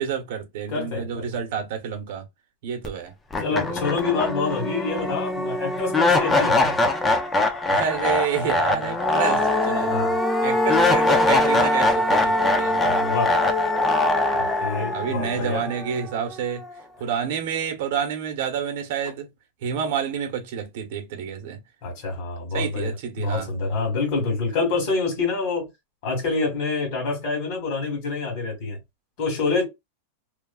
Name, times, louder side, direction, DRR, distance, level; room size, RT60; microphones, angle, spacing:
voice 1, 0.0-2.2 2.6-3.1 3.5-3.8 7.7-9.9 10.4-12.8 14.9-16.7 17.0-19.3 19.6-21.6 22.5-23.5, right 8 dB, 55° right, 1.0 m, -29 dB
voice 2, 0.7-1.4 3.4-6.8 9.9-10.2 12.8-13.3 14.3-15.7 21.8-25.7 26.0-28.8 29.2-29.6, left 4 dB, 45° left, 1.9 m, -27 dB
sound 1, 2.8-2.9 3.3-16.4, left 2 dB, 10° left, 0.4 m, -22 dB
3.1 x 2.3 x 2.3 m
supercardioid pair, 170°, 0 cm